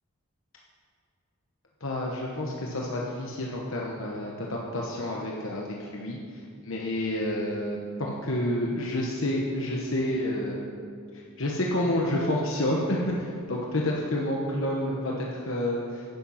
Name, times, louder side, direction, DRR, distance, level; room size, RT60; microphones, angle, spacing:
voice 1, 1.8-5.7 5.9-6.2 6.6-10.6 11.4-16.0, left 1 dB, 65° left, -2 dB, 1.1 m, -29 dB
10.5 x 8.7 x 5.7 m, 2.2 s
head